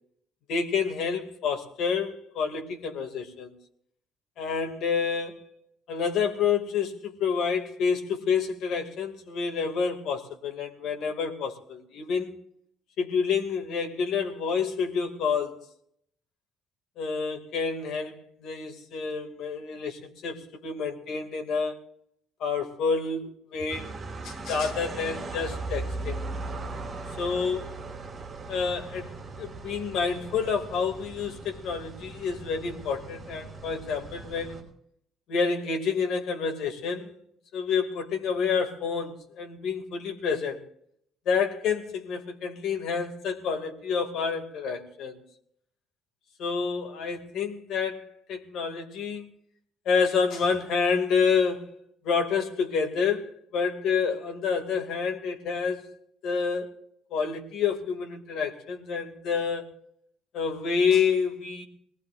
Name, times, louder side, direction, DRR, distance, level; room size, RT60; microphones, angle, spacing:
voice 1, 0.5-3.5 4.4-5.4 5.9-12.3 13.0-15.6 17.0-21.8 22.4-23.9 24.2-26.2 27.2-27.7 28.5-34.6 35.3-37.1 37.5-40.6 41.3-45.2 46.4-49.2 49.9-51.6 52.0-55.9 56.2-56.7 57.1-59.7 60.3-61.6, left 5 dB, 65° left, 2.4 m, -28 dB
sound 1, 23.7-34.6, right 3 dB, 25° right, 5.1 m, -38 dB
24.0 x 19.0 x 2.6 m
cardioid pair, 165°, 0 cm